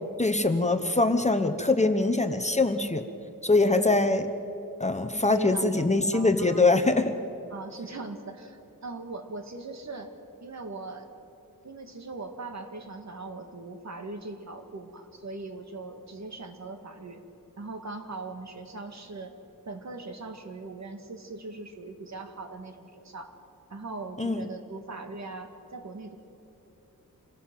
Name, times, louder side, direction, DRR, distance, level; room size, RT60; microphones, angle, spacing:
voice 1, 0.2-3.0 3.4-4.3 4.8-7.1 24.2-24.4, left 2 dB, 20° left, 7 dB, 0.9 m, -23 dB
voice 2, 5.2-6.6 7.5-10.1 10.4-11.1 11.6-17.2 17.6-19.4 19.7-23.3 23.7-26.2, right 3 dB, 50° right, 6 dB, 2.0 m, -40 dB
26.5 x 16.5 x 7.6 m, 2.9 s
wide cardioid pair, 125°, 34 cm